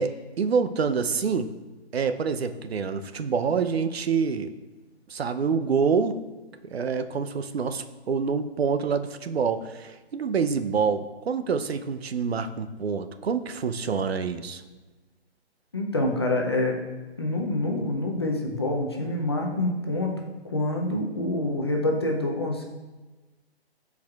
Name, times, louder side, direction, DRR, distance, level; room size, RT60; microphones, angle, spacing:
voice 1, 0.0-1.5 1.9-4.5 5.1-6.2 6.7-14.6, right 5 dB, 70° right, 9 dB, 0.6 m, -26 dB
voice 2, 15.7-16.8 17.2-20.1 20.4-22.7, left 1 dB, 25° left, 0 dB, 0.5 m, -26 dB
12.0 x 4.7 x 2.4 m, 1.2 s
hypercardioid pair, 160°, 33 cm